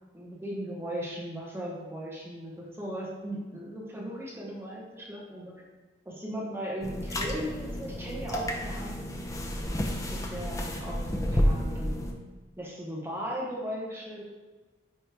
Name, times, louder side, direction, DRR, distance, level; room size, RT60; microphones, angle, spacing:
voice 1, 0.1-5.6 6.0-9.1 10.1-12.0 12.6-14.2, equal, 15° right, -4 dB, 1.0 m, -37 dB
sound 1, 6.8-12.1, equal, 20° left, 0.5 m, -31 dB
9.0 x 3.2 x 3.3 m, 1.3 s
head